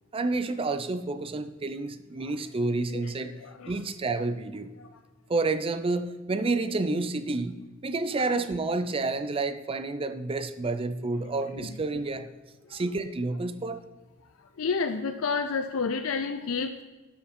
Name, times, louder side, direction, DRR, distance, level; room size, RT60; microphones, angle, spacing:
voice 1, 0.1-3.3 3.7-4.7 5.3-12.3 12.7-13.8, right 3 dB, 25° right, 11 dB, 0.5 m, -29 dB
voice 2, 14.6-16.8, left 5 dB, 75° left, 8 dB, 0.5 m, -29 dB
12.0 x 5.2 x 4.3 m, 1.2 s
head